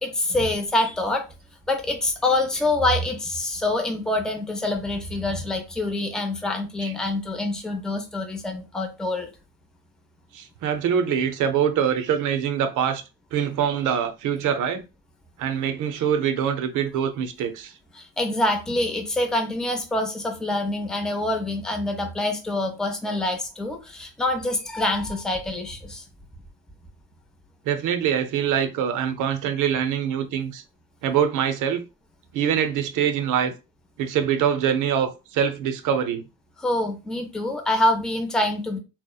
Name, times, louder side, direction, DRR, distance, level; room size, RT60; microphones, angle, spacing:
voice 1, 0.0-1.2 1.7-9.3 17.9-26.0 36.6-38.8, left 1 dB, ahead, 0.4 m, -26 dB
voice 2, 10.3-13.0 13.3-14.8 15.4-17.7 27.7-30.6 31.0-31.8 32.3-33.5 34.0-36.2, right 8 dB, 65° right, 0.6 m, -24 dB
2.8 x 2.1 x 2.2 m
supercardioid pair, 85°, 34 cm